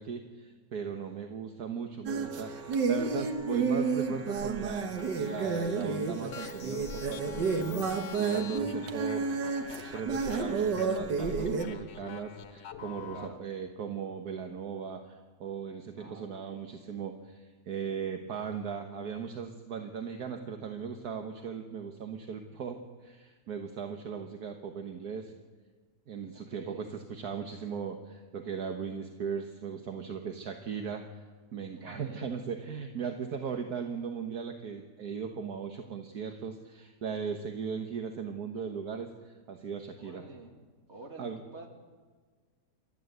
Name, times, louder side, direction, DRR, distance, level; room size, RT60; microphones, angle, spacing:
voice 1, 0.0-9.2 9.9-25.3 26.1-31.0 31.5-40.2 41.2-41.4, right 6 dB, 65° right, 5 dB, 1.7 m, -38 dB
sound 1, 2.1-11.7, right 4 dB, 85° right, 2.1 m, -31 dB
sound 2, 5.0-13.3, left 7 dB, 85° left, 1.8 m, -46 dB
voice 2, 13.1-13.4 16.0-16.7 26.3-26.9 31.7-32.3 40.0-40.5 40.9-41.7, right 2 dB, 40° right, 2 dB, 3.1 m, -48 dB
28.5 x 13.5 x 8.1 m, 1.5 s
omnidirectional pair, 1.8 m